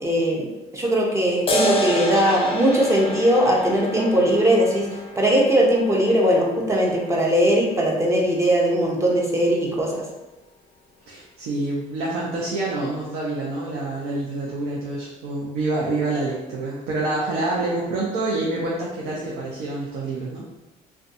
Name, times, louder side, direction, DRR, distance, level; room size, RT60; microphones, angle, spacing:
voice 1, 0.0-0.5 0.7-4.9 5.2-10.0, equal, 15° right, -2 dB, 0.5 m, -20 dB
sound 1, 1.5-8.4, equal, 35° left, 0.4 m, -29 dB
voice 2, 11.1-20.4, right 2 dB, 85° right, -5 dB, 0.5 m, -27 dB
2.5 x 2.2 x 2.5 m, 1.0 s
cardioid pair, 110°, 17 cm